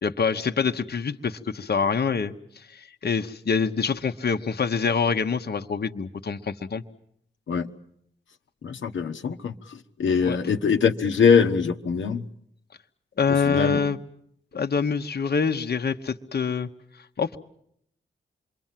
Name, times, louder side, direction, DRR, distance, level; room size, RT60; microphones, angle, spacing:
voice 1, 0.0-6.8 10.2-10.4 13.2-14.0 14.5-16.7 17.2-17.4, left 5 dB, 55° left, 5 dB, 1.3 m, -25 dB
voice 2, 8.6-12.2 13.3-13.8, left 6 dB, 75° left, 4 dB, 1.3 m, -23 dB
27.0 x 23.0 x 7.6 m, 0.73 s
supercardioid pair, 45°, 20 cm